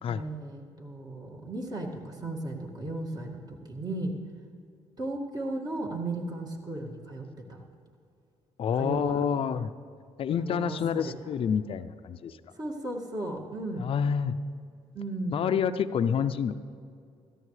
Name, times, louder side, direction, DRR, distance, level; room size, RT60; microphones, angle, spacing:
voice 1, 0.1-4.1 5.0-7.6 8.8-9.2 10.4-11.1 12.6-13.9 14.9-15.4, right 2 dB, 35° right, 0 dB, 2.1 m, -35 dB
voice 2, 8.6-9.7 10.2-12.4 13.8-14.4 15.3-16.5, left 7 dB, 50° left, 12 dB, 0.5 m, -28 dB
17.0 x 13.5 x 3.3 m, 2.4 s
supercardioid pair, 80°, 12 cm